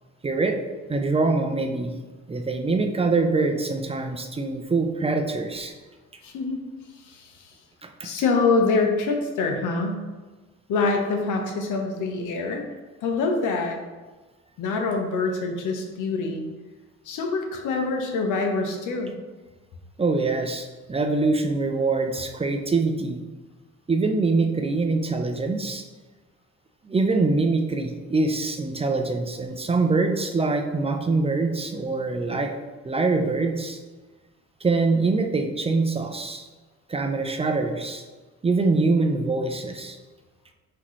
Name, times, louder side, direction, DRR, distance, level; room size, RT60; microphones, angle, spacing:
voice 1, 0.2-0.6 0.9-1.9 2.3-5.7 7.8-8.1 20.0-23.2 23.9-25.8 26.8-32.5 32.8-33.8 34.6-36.5 36.9-38.0 38.4-40.0, right 3 dB, 20° right, 4 dB, 0.5 m, -24 dB
voice 2, 6.2-6.6 7.0-7.5 8.0-10.0 10.7-12.6 13.0-13.8 14.6-16.5 17.1-19.1, left 3 dB, 85° left, 3 dB, 0.8 m, -25 dB
5.8 x 2.9 x 3.1 m, 1.3 s
cardioid pair, 90°, 30 cm